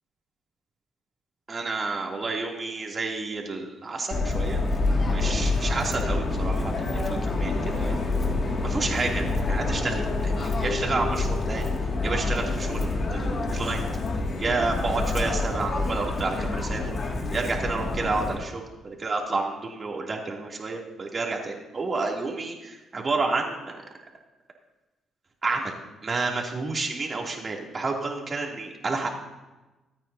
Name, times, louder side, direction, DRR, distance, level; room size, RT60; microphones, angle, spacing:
voice 1, 1.5-4.6 5.1-8.0 8.6-11.7 12.0-13.9 14.4-16.8 17.3-23.7 25.4-29.1, right 3 dB, 35° right, -1 dB, 2.8 m, -30 dB
Subway metro underground, 4.1-18.4, left 3 dB, 45° left, 2.2 m, -27 dB
26.0 x 9.1 x 2.8 m, 1.1 s
cardioid pair, 90°, 0 cm